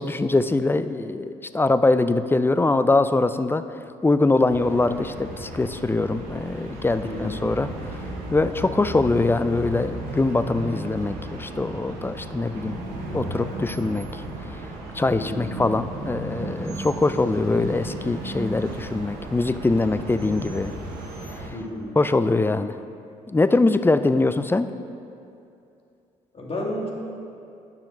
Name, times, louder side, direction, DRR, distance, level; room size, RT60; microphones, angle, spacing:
voice 1, 0.0-3.6 4.0-8.0 8.3-12.8 13.1-14.2 14.9-20.7 22.0-22.8 23.3-24.7, left 3 dB, 15° left, 11 dB, 0.4 m, -23 dB
sound 1, 4.5-21.5, right 1 dB, 85° right, 1.1 m, -35 dB
voice 2, 7.0-7.4 15.1-15.5 21.5-22.0 26.3-26.9, left 1 dB, 40° left, -2 dB, 1.8 m, -31 dB
9.3 x 5.7 x 4.3 m, 2.6 s
supercardioid pair, 65°, 15 cm